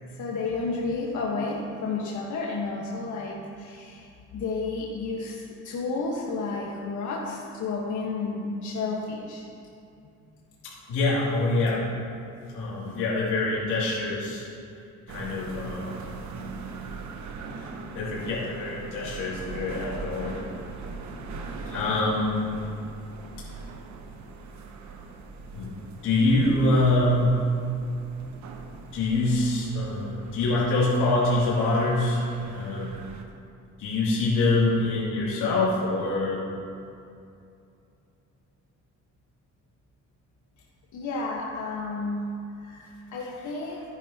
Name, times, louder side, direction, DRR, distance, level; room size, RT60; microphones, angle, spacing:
voice 1, 0.0-9.4 40.9-43.8, left 3 dB, 75° left, -4 dB, 1.5 m, -31 dB
voice 2, 10.9-11.8 12.5-14.5 15.1-16.0 17.9-20.4 21.7-22.3 25.5-25.7 26.0-27.3 28.9-32.9 33.8-36.4, left 2 dB, 90° left, -8 dB, 2.8 m, -25 dB
sound 1, 15.1-33.2, right 4 dB, 70° right, 1.1 m, -41 dB
14.0 x 10.5 x 3.0 m, 2.6 s
cardioid pair, 90°, 30 cm